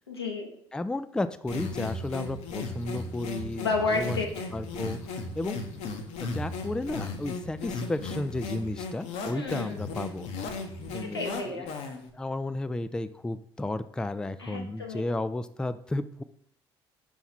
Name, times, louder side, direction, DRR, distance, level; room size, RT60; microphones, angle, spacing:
voice 1, 0.1-0.5 3.6-4.5 9.3-9.8 10.6-11.7 14.4-15.0, left 3 dB, 85° left, 1 dB, 0.9 m, -32 dB
voice 2, 0.7-4.2 4.5-5.0 5.4-5.6 6.2-10.3 10.9-11.7 12.1-16.2, left 2 dB, 5° left, 13 dB, 0.3 m, -33 dB
is less than rhythmic thing, 1.5-12.1, left 3 dB, 60° left, 0.9 m, -36 dB
5.7 x 4.6 x 4.1 m, 0.65 s
figure-of-eight pair, 50°, 13 cm